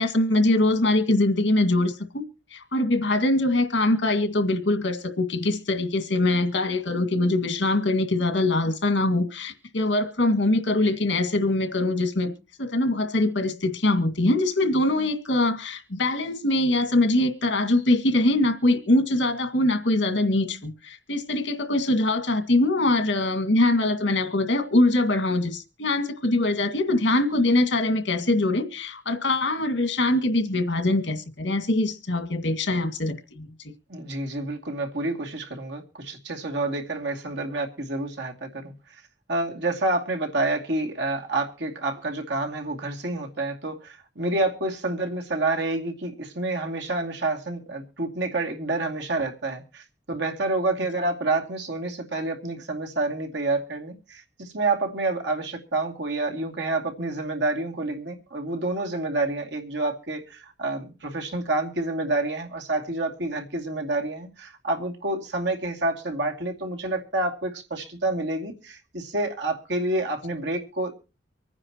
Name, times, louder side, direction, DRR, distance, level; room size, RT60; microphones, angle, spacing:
voice 1, 0.0-2.2 2.5-12.3 12.6-33.7, left 2 dB, 90° left, 2.1 m, -23 dB
voice 2, 33.9-38.7 39.3-70.9, right 2 dB, 70° right, 2.5 m, -28 dB
25.0 x 9.8 x 3.0 m
head